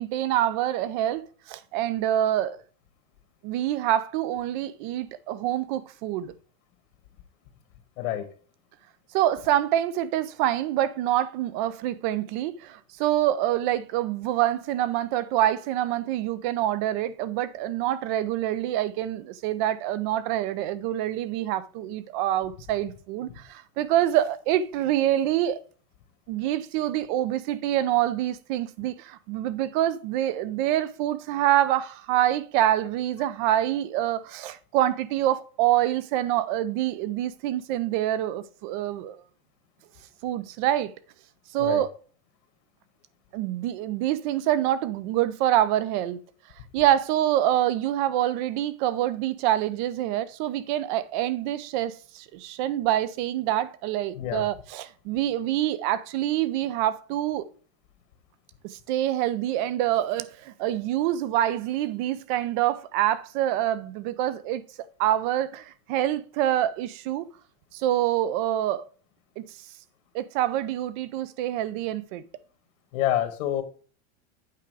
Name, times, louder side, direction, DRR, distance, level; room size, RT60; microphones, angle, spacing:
voice 1, 0.0-2.6 3.4-6.3 9.1-25.6 26.3-39.2 40.2-40.9 41.5-41.9 43.3-46.2 46.7-57.5 58.6-64.6 65.0-67.3 67.7-68.8 69.4-69.5 70.1-72.2, right 12 dB, 35° right, 0.5 m, -26 dB
voice 2, 54.2-54.5 72.9-73.6, left 12 dB, 70° left, 1.5 m, -27 dB
8.6 x 5.0 x 4.7 m
supercardioid pair, 165°, 42 cm